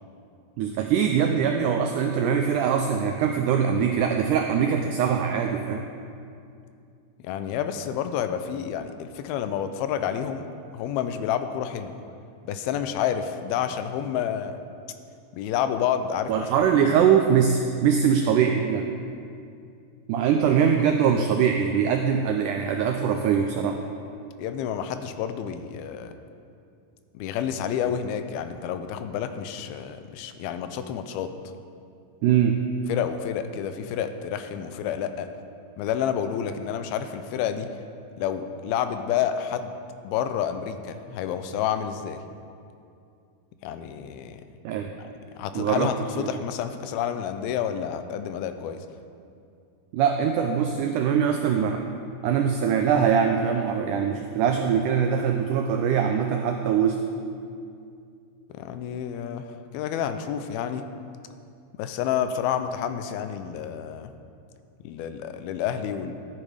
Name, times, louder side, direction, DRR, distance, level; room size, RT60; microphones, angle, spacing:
voice 1, 0.6-5.8 16.3-18.9 20.1-23.8 32.2-32.6 44.7-44.9 45.5-45.9 46.2-46.4 49.9-51.8 52.2-57.0, right 7 dB, 90° right, 4 dB, 1.8 m, -22 dB
voice 2, 7.2-10.5 10.7-11.9 12.5-14.6 15.3-16.7 24.4-26.1 27.1-31.3 32.9-35.3 35.8-37.7 38.2-39.7 40.0-42.2 43.6-44.4 45.4-48.9 58.5-59.5 59.7-60.9 61.8-64.1 64.8-66.1, left 9 dB, 90° left, 9 dB, 2.5 m, -29 dB
14.0 x 8.7 x 4.9 m, 2.5 s
omnidirectional pair, 4.3 m